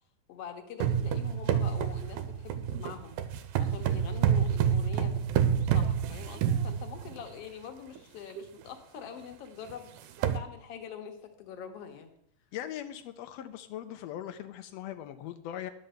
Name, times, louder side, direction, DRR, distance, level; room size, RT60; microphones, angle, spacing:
voice 1, 0.3-3.1 3.6-9.9 10.3-12.1, left 8 dB, 60° left, 5 dB, 1.9 m, -44 dB
Sonicsnaps-OM-FR-taper-le-vitre, 0.8-7.3 8.0-8.1 8.4-8.6 9.0-9.1 9.7-9.8 10.0-10.4, right 8 dB, 85° right, 2.2 m, -28 dB
voice 2, 12.5-15.7, left 11 dB, 90° left, 8 dB, 1.4 m, -40 dB
11.0 x 5.3 x 7.9 m, 0.73 s
omnidirectional pair, 3.7 m